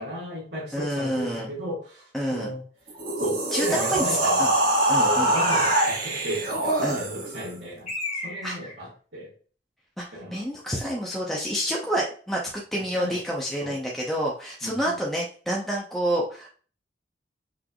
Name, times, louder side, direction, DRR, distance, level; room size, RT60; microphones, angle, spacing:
voice 1, 0.0-2.6 3.2-9.3 10.1-10.4 12.7-13.2 13.6-13.8 14.6-15.0, right 1 dB, 80° right, -9 dB, 1.8 m, -35 dB
voice 2, 0.7-1.5 2.1-2.5 3.5-4.1 4.4-4.5 4.9-5.3 6.8-7.0 8.4-8.6 10.0-10.1 10.3-16.5, equal, ahead, -3 dB, 0.7 m, -28 dB
sound 1, 2.9-7.5, right 1 dB, 55° right, 1.4 m, -24 dB
Bird, 5.3-6.2 7.9-8.8, left 2 dB, 40° left, 1.9 m, -34 dB
5.9 x 3.4 x 2.3 m, 0.42 s
head